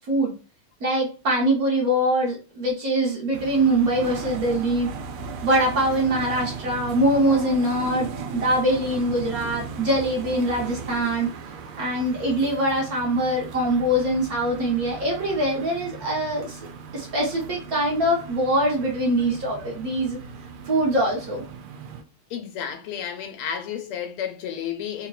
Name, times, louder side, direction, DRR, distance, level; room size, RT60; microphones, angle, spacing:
voice 1, 0.8-4.9 5.4-11.3 11.8-16.6 16.9-20.2 20.7-21.4, right 1 dB, 55° right, 1.2 m, -23 dB
sound 1, 3.3-22.0, right 5 dB, 85° right, 1.5 m, -37 dB
voice 2, 22.3-25.1, left 8 dB, 90° left, 1.6 m, -32 dB
3.7 x 2.9 x 2.3 m
omnidirectional pair, 2.4 m